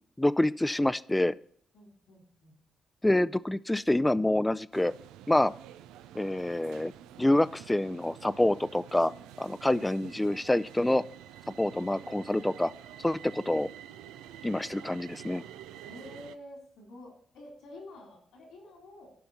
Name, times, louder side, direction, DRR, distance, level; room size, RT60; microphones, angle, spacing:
voice 1, 0.2-1.3 3.0-4.9 5.3-5.5 6.1-6.9 7.2-9.1 9.4-11.0 11.6-12.7 13.0-13.7 14.4-15.4, left 1 dB, 15° left, 17 dB, 0.5 m, -26 dB
voice 2, 1.7-2.6 15.9-19.1, left 1 dB, 75° left, 0 dB, 3.6 m, -49 dB
sound 1, 4.7-16.4, right 11 dB, 80° right, 0.4 m, -49 dB
13.0 x 5.7 x 4.2 m, 0.62 s
hypercardioid pair, 45°, 0 cm